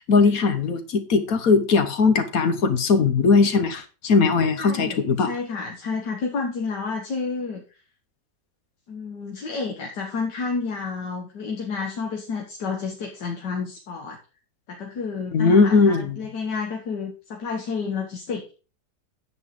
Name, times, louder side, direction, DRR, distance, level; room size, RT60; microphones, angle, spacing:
voice 1, 0.1-5.3 15.3-16.2, left 4 dB, 60° left, 1.5 m, -19 dB
voice 2, 4.6-7.6 8.9-14.2 14.7-18.5, left 4 dB, 80° left, 1.9 m, -30 dB
9.8 x 7.7 x 3.8 m
omnidirectional pair, 1.8 m